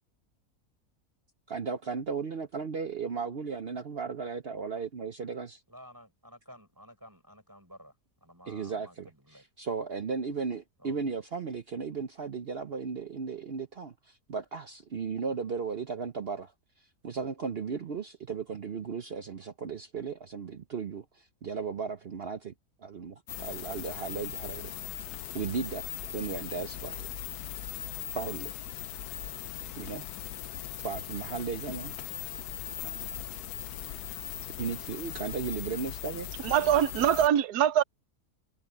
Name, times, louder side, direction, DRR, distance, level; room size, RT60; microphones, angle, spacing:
voice 1, 1.5-5.6 8.5-9.1 9.6-16.5 17.0-22.5 22.8-24.7 25.3-25.9 26.1-27.1 28.1-28.5 29.8-30.1 30.8-31.9 32.8-33.1 33.8-34.0 34.6-36.3, right 5 dB, 50° right, 0.8 m, -35 dB
voice 2, 5.7-8.0 8.2-9.4 10.8-11.1, equal, 10° right, 6.5 m, -52 dB
sound 1, 23.3-37.3, left 12 dB, 80° left, 1.2 m, -39 dB
voice 3, 36.4-37.8, right 10 dB, 85° right, 1.3 m, -23 dB
omnidirectional pair, 1.6 m